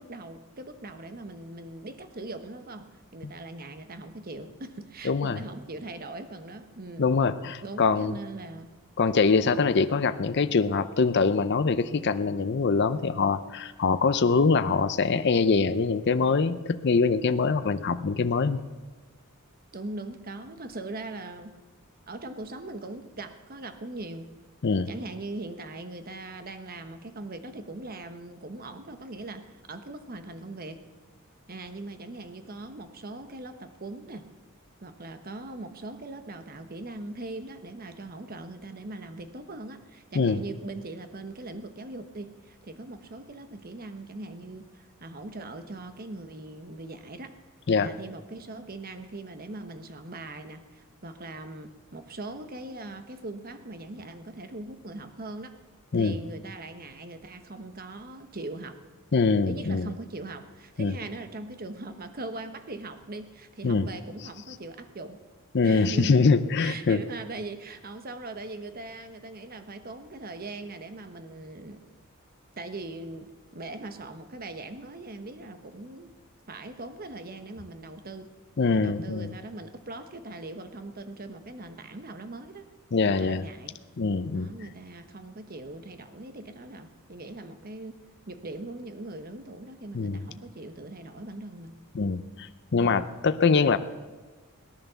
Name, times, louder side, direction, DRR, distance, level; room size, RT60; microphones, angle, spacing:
voice 1, 0.0-7.1 7.6-8.7 19.7-21.6 22.1-24.3 24.9-30.8 31.5-34.3 34.8-47.4 47.8-55.6 55.9-58.8 59.4-65.2 65.6-66.3 66.6-71.9 72.6-76.2 76.5-78.3 78.7-82.7 83.0-83.8 84.3-88.0 88.3-91.8 92.8-93.1, right 2 dB, 45° right, 9 dB, 1.0 m, -40 dB
voice 2, 5.0-5.4 7.0-8.1 9.0-18.6 24.6-24.9 40.1-40.4 47.7-47.9 55.9-56.2 59.1-59.9 60.8-60.9 63.6-63.9 65.5-67.0 78.6-79.3 82.9-83.4 84.0-84.5 89.9-90.2 92.0-93.8, left 4 dB, 50° left, 11 dB, 0.6 m, -24 dB
18.0 x 10.5 x 6.9 m, 1.4 s
head